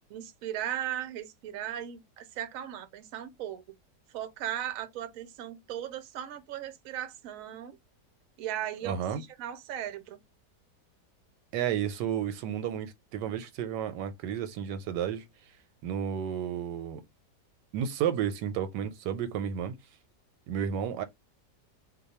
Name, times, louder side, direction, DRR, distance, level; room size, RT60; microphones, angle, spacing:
voice 1, 0.1-3.8 4.1-7.8 8.4-10.2, right 11 dB, 65° right, 0.9 m, -37 dB
voice 2, 8.8-9.2 11.5-15.3 15.8-17.0 17.7-19.8 20.5-21.0, right 9 dB, 90° right, 1.2 m, -32 dB
2.8 x 2.2 x 4.1 m
omnidirectional pair, 1.8 m